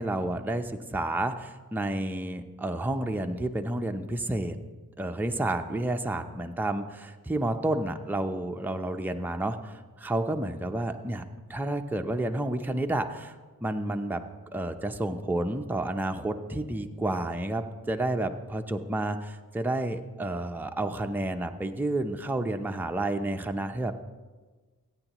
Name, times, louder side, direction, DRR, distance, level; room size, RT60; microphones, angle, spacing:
voice 1, 0.0-4.6 5.0-11.2 11.5-13.4 13.6-14.2 14.5-23.9, right 1 dB, 5° right, 5 dB, 0.7 m, -30 dB
17.5 x 9.1 x 3.0 m, 1.3 s
cardioid pair, 45°, 35 cm